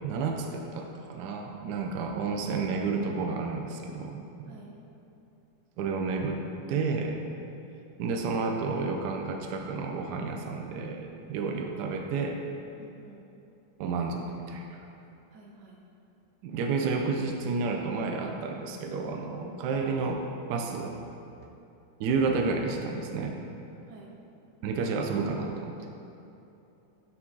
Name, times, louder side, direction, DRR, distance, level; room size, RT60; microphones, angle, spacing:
voice 1, 0.0-4.5 5.8-6.4 6.7-7.2 8.0-12.4 13.8-14.8 16.4-20.2 20.5-21.0 22.0-23.4 24.6-25.7, right 4 dB, 80° right, 2 dB, 0.9 m, -31 dB
voice 2, 12.8-13.2 15.3-15.8 19.7-19.8 23.9-24.1, right 2 dB, 60° right, -1 dB, 1.4 m, -51 dB
6.0 x 5.9 x 3.9 m, 2.9 s
omnidirectional pair, 2.3 m